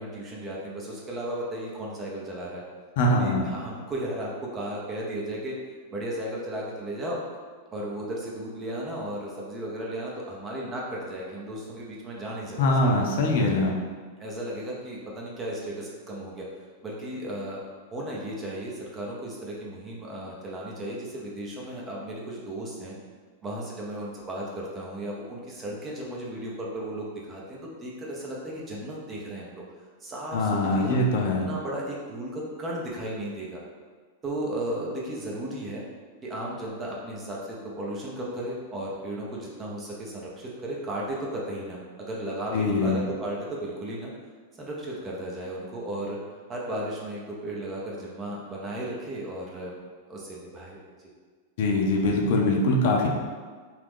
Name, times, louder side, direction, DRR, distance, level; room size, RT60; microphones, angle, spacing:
voice 1, 0.0-2.6 3.0-5.5 5.9-7.2 7.7-13.1 14.2-16.4 16.8-17.6 17.9-22.9 23.4-29.6 30.0-33.6 34.2-35.8 36.2-44.1 44.6-46.2 46.5-49.7 50.1-51.1, right 1 dB, 20° right, -3 dB, 0.6 m, -35 dB
voice 2, 3.0-3.4 12.6-13.7 30.3-31.5 42.5-43.0 51.6-53.1, left 2 dB, 60° left, 0 dB, 0.5 m, -23 dB
3.0 x 2.4 x 3.5 m, 1.5 s
supercardioid pair, 140°, 0 cm